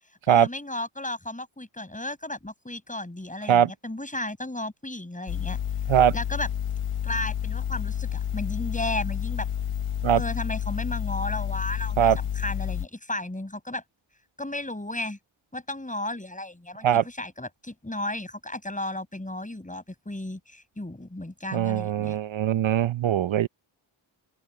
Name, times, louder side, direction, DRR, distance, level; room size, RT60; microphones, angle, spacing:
voice 1, 0.3-5.6 6.1-6.5 7.0-9.5 10.2-13.8 14.4-15.2 15.5-22.2, left 1 dB, 15° left, 7.7 m, -34 dB
sound 1, 5.3-12.9, left 9 dB, 90° left, 0.9 m, -30 dB
voice 2, 21.5-23.5, right 10 dB, 70° right, 0.7 m, -21 dB
open air
wide cardioid pair, 80°, 49 cm